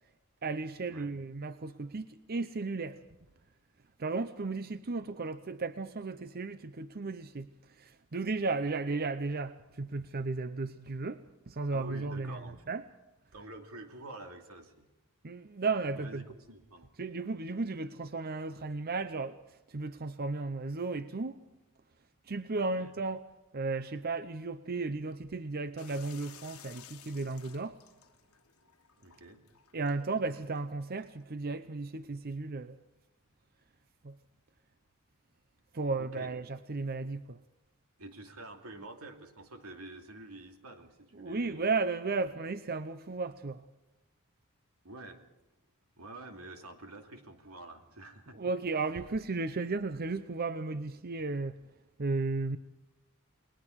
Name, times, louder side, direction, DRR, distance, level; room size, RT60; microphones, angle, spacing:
voice 1, 0.4-3.0 4.0-12.8 15.2-16.2 17.0-21.4 22.2-23.3 23.5-27.8 29.7-32.8 34.0-34.2 35.7-37.4 41.2-43.7 48.3-51.6 52.0-52.6, right 3 dB, 45° right, 0.7 m, -34 dB
voice 2, 11.7-12.6 13.3-14.9 15.9-16.9 22.8-22.9 29.0-29.5 36.0-36.3 38.0-41.6 42.2-42.3 44.8-45.2 46.0-48.4, right 2 dB, 90° right, 2.7 m, -48 dB
sound 1, 25.8-31.2, left 10 dB, 75° left, 1.4 m, -56 dB
30.0 x 21.0 x 4.7 m
head